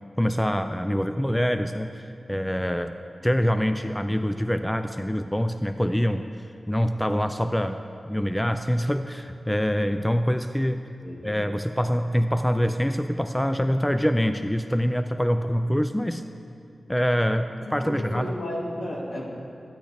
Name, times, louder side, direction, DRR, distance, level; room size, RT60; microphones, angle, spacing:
voice 1, 0.2-3.0 3.2-6.2 6.7-7.8 8.1-10.8 11.2-16.2 16.9-18.3, equal, 5° left, 8 dB, 0.4 m, -25 dB
voice 2, 17.6-19.3, left 1 dB, 70° left, -4 dB, 2.1 m, -33 dB
13.0 x 10.0 x 3.4 m, 2.5 s
cardioid pair, 50°, 0 cm